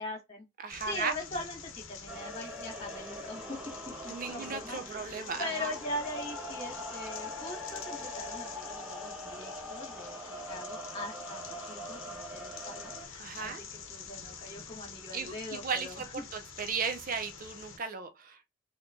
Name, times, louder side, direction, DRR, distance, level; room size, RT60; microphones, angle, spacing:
voice 1, 0.0-0.5 0.8-3.6 4.0-11.4 11.7-16.2, left 2 dB, 30° left, 1.5 m, -41 dB
voice 2, 0.6-1.1 4.1-5.7 13.2-13.6 15.1-18.4, right 5 dB, 40° right, 0.5 m, -36 dB
sound 1, 0.7-17.8, left 6 dB, 60° left, 0.8 m, -47 dB
sound 2, 2.1-13.1, equal, 5° right, 1.2 m, -43 dB
4.3 x 2.9 x 2.6 m
head